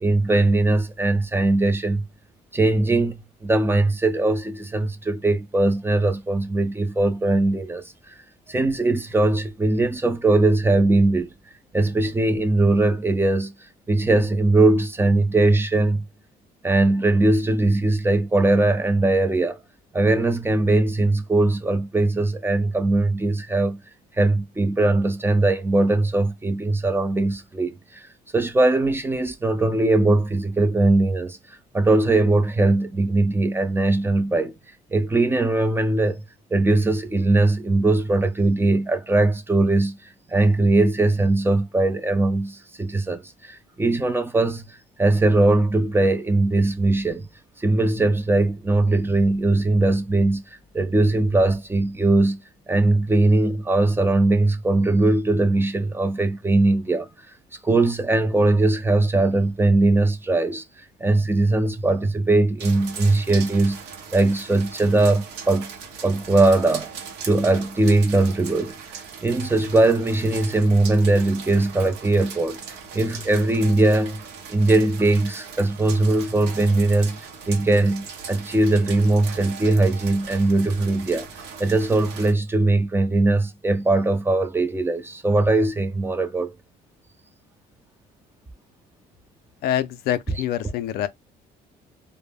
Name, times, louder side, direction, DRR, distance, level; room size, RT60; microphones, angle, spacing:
voice 1, 0.0-2.0 2.5-3.1 3.4-8.1 8.5-11.3 11.7-13.5 13.9-16.1 16.6-19.6 19.9-23.8 24.2-28.1 28.3-31.4 31.7-34.5 34.9-36.2 36.5-40.0 40.3-44.7 45.0-47.2 47.6-52.4 52.7-57.1 57.6-60.6 61.0-63.8 64.1-65.7 66.0-66.9 67.2-68.7 69.2-72.6 72.9-74.2 74.5-77.2 77.5-81.3 81.6-86.5, right 2 dB, 15° right, 0.4 m, -20 dB
sound 1, 62.6-82.3, right 6 dB, 85° right, 0.7 m, -39 dB
voice 2, 89.6-91.1, left 11 dB, 70° left, 0.4 m, -25 dB
2.1 x 2.0 x 3.3 m
cardioid pair, 110°, 17 cm